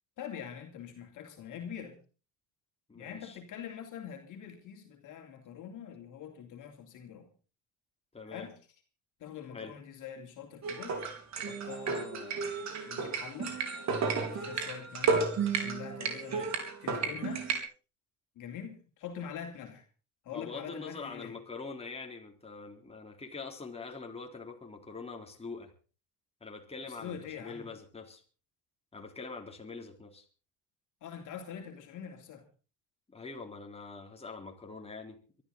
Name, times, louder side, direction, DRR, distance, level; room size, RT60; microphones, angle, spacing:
voice 1, 0.2-2.0 2.9-7.3 8.3-8.5 9.2-11.0 11.5-12.6 12.9-13.6 14.1-15.3 15.6-16.4 16.8-17.5 18.3-19.8 20.2-21.4 26.9-27.7 31.0-32.4, left 8 dB, 60° left, 3.2 m, -44 dB
voice 2, 2.9-3.4 8.1-8.5 9.5-9.7 16.3-16.5 20.3-25.7 26.4-28.2 28.9-30.3 33.1-35.4, left 4 dB, 15° left, 3.7 m, -44 dB
sound 1, 10.6-17.6, right 5 dB, 50° right, 4.0 m, -32 dB
23.5 x 12.5 x 4.0 m
supercardioid pair, 85°, 35 cm